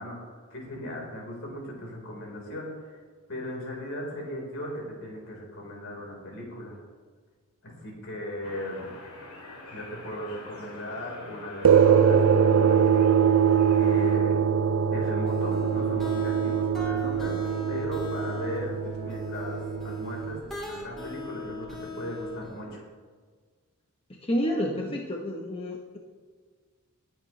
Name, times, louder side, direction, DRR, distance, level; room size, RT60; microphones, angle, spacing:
voice 1, 0.0-3.0 3.3-6.8 7.6-8.9 9.7-12.9 13.8-14.4 14.9-17.4 17.7-22.8, left 1 dB, 65° left, -1 dB, 4.2 m, -37 dB
sound 1, 8.4-14.2, left 2 dB, 85° left, 2.4 m, -46 dB
sound 2, 11.6-20.4, right 7 dB, 65° right, 0.5 m, -23 dB
sound 3, 15.0-22.6, left 2 dB, ahead, 3.6 m, -40 dB
voice 2, 24.1-26.0, equal, 25° left, 0 dB, 1.0 m, -30 dB
20.5 x 9.1 x 3.2 m, 1.5 s
head